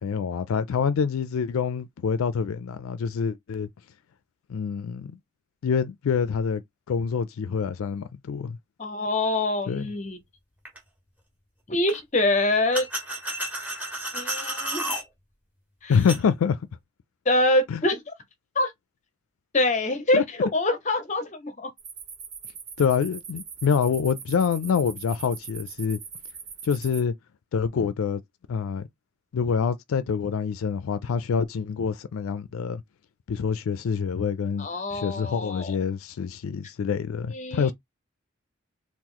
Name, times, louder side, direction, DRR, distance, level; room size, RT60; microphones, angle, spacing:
voice 1, 0.0-3.7 4.5-5.2 5.6-6.6 6.9-8.6 9.7-9.9 15.9-16.6 17.7-17.8 20.1-20.2 22.8-26.0 26.6-27.1 27.5-28.2 28.5-28.9 29.3-32.8 33.3-34.7 34.9-37.7, left 6 dB, 80° left, 0.4 m, -26 dB
voice 2, 8.8-10.2 11.7-12.9 14.1-14.9 15.8-15.9 17.3-18.1 18.6-18.7 19.5-21.7 34.6-35.8 37.3-37.7, left 2 dB, 35° left, 0.7 m, -25 dB
sound 1, 10.7-10.8 11.9-12.0 12.7-15.0 15.9-16.2, right 1 dB, 10° right, 0.9 m, -32 dB
sound 2, 21.8-27.0, right 6 dB, 35° right, 1.1 m, -41 dB
3.0 x 2.4 x 3.7 m
head